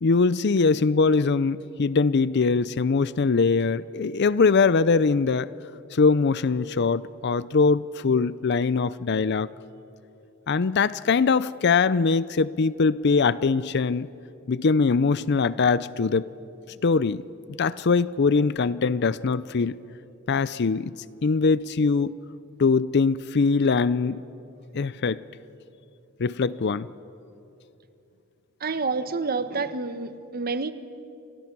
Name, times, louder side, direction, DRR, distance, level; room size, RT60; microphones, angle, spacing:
voice 1, 0.0-5.5 5.9-9.5 10.5-14.1 14.5-16.3 16.8-17.2 17.6-19.8 20.3-20.9 21.2-22.1 22.6-24.2 24.7-25.2 26.2-26.9, left 4 dB, 55° left, 17 dB, 0.5 m, -22 dB
voice 2, 28.6-30.7, right 4 dB, 45° right, 11 dB, 1.1 m, -28 dB
30.0 x 27.0 x 6.1 m, 2.7 s
head